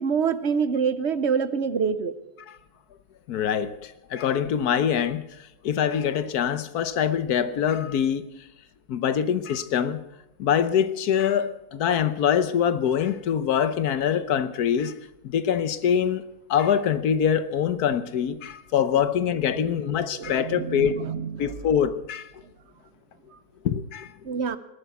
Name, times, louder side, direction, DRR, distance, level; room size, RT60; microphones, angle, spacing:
voice 1, 0.0-2.1 19.5-19.8 20.1-21.5 24.2-24.6, right 6 dB, 55° right, 13 dB, 1.0 m, -26 dB
voice 2, 3.3-8.3 8.9-10.0 10.4-14.9 15.2-16.2 16.5-21.0 21.4-22.3 23.6-24.1, left 8 dB, 75° left, 13 dB, 1.4 m, -24 dB
19.5 x 9.0 x 8.2 m, 0.92 s
omnidirectional pair, 1.7 m